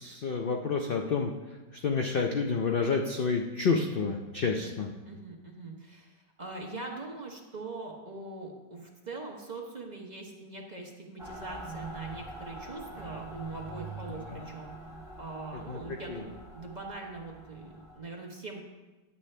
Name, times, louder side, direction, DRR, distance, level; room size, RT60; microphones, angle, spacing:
voice 1, 0.0-1.3 1.7-4.9 14.3-14.4 15.7-15.8 16.1-16.3, left 4 dB, 65° left, 2 dB, 0.5 m, -29 dB
voice 2, 4.4-4.8 5.0-14.7 15.2-18.6, right 3 dB, 30° right, -1 dB, 0.9 m, -42 dB
Mechanical fan, 11.2-18.0, right 2 dB, ahead, 2.0 m, -44 dB
11.0 x 8.4 x 3.3 m, 1.2 s
omnidirectional pair, 1.7 m